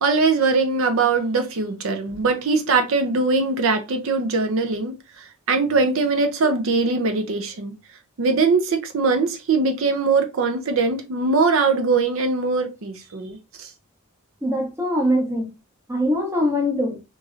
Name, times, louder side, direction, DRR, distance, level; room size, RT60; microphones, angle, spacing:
voice 1, 0.0-7.7 8.2-13.7, right 4 dB, 65° right, 0.5 m, -21 dB
voice 2, 14.4-15.5 15.9-17.0, equal, 10° right, 0.7 m, -22 dB
3.0 x 2.6 x 2.4 m
head